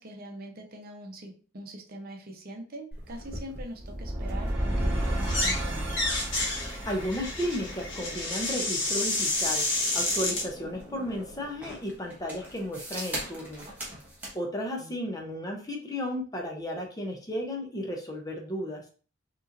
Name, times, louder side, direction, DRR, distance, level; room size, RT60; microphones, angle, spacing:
voice 1, 0.0-6.1 14.8-14.9, right 1 dB, 45° right, 2 dB, 0.8 m, -43 dB
sound 1, 2.9-14.4, right 1 dB, 10° right, 1.2 m, -44 dB
sound 2, 3.7-8.8, right 1 dB, 25° right, 1.3 m, -32 dB
sound 3, 5.2-5.6 5.9-10.5, left 2 dB, 55° left, 1.3 m, -29 dB
voice 2, 6.8-9.6 9.9-13.7 14.3-18.8, equal, 15° left, 1 dB, 0.6 m, -34 dB
5.3 x 3.0 x 2.5 m, 0.40 s
head